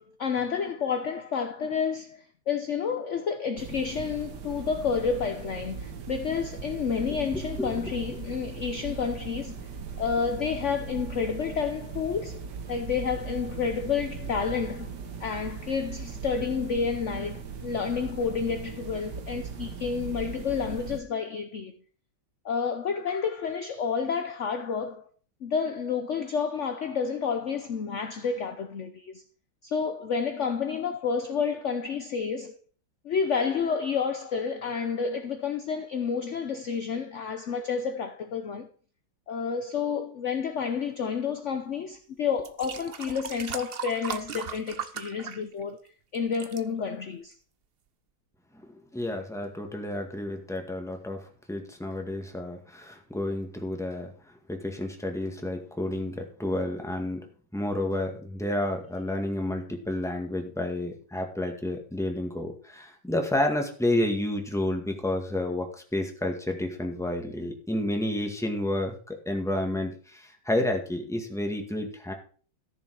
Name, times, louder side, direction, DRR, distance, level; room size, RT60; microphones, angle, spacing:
voice 1, 0.0-9.6 10.0-14.9 15.2-21.7 22.4-25.1 25.4-29.2 29.6-32.6 33.0-38.7 39.3-45.8 46.1-47.3, left 6 dB, 50° left, 0.9 m, -30 dB
sound 1, 3.6-21.0, right 6 dB, 60° right, 1.8 m, -39 dB
sound 2, 41.8-41.9 42.4-45.9 46.1-46.6 47.3-47.4, right 7 dB, 75° right, 0.5 m, -38 dB
voice 2, 48.9-54.1 54.5-57.2 57.5-72.1, left 1 dB, ahead, 1.8 m, -30 dB
14.0 x 7.1 x 4.8 m
omnidirectional pair, 2.2 m